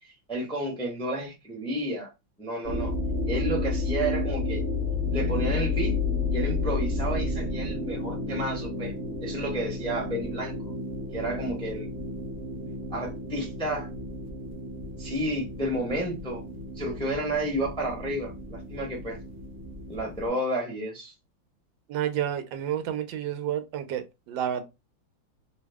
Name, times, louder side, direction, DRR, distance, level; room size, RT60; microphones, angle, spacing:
voice 1, 0.0-2.1 2.4-2.9 3.3-4.6 5.1-5.9 6.3-8.9 9.2-10.6 11.1-11.9 12.9-13.9 15.0-16.4 16.7-19.2 19.9-21.1, right 1 dB, 5° left, 0.6 m, -31 dB
sound 1, 2.6-20.3, left 2 dB, 45° right, 0.8 m, -31 dB
voice 2, 21.9-24.6, right 10 dB, 80° right, 1.3 m, -30 dB
3.2 x 2.0 x 3.4 m
omnidirectional pair, 2.0 m